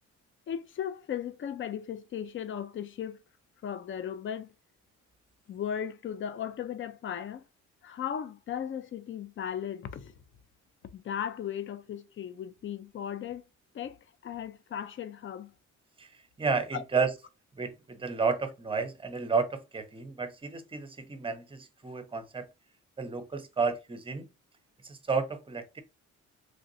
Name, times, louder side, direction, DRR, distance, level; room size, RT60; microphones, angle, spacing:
voice 1, 0.5-3.2 3.6-4.5 5.5-7.4 7.8-10.1 10.9-13.4 13.7-15.5 16.7-16.8, left 9 dB, 40° left, 0.5 m, -36 dB
voice 2, 16.4-17.1 17.6-22.5 23.0-24.3 24.8-25.8, right 4 dB, 20° right, 0.7 m, -31 dB
3.3 x 2.5 x 2.6 m
cardioid pair, 90°, 30 cm